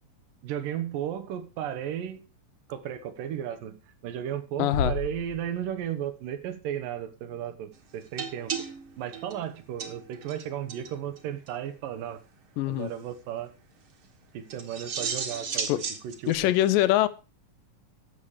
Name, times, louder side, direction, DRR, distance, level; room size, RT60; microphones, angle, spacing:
voice 1, 0.4-2.2 2.7-8.5 9.0-12.2 12.7-13.5 14.3-16.5, right 10 dB, 85° right, 2.8 m, -34 dB
voice 2, 4.6-4.9 12.6-12.9 15.7-15.8 16.3-17.1, left 14 dB, 85° left, 2.3 m, -23 dB
Bass drum, 4.7-6.2, left 4 dB, 55° left, 1.3 m, -33 dB
sound 1, 8.2-10.4 10.7-10.9 11.2-11.3 11.5-11.6 14.5-16.4, right 6 dB, 50° right, 1.9 m, -34 dB
12.0 x 7.3 x 4.9 m
omnidirectional pair, 3.8 m